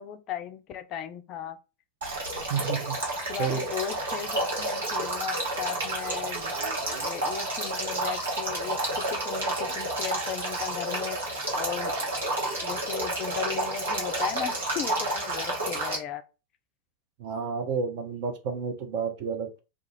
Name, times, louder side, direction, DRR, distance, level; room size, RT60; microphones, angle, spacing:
voice 1, 0.0-1.6 3.3-6.5 7.0-8.8 9.1-12.1 12.6-16.2, left 9 dB, 35° left, 0.3 m, -36 dB
Male speech man speaking / Stream / Trickle dribble, 2.0-16.0, right 2 dB, 65° right, 1.1 m, -30 dB
voice 2, 2.5-3.0 3.4-3.6 17.2-19.6, right 6 dB, 50° right, 0.6 m, -30 dB
2.4 x 2.3 x 3.0 m
figure-of-eight pair, 90°, 0 cm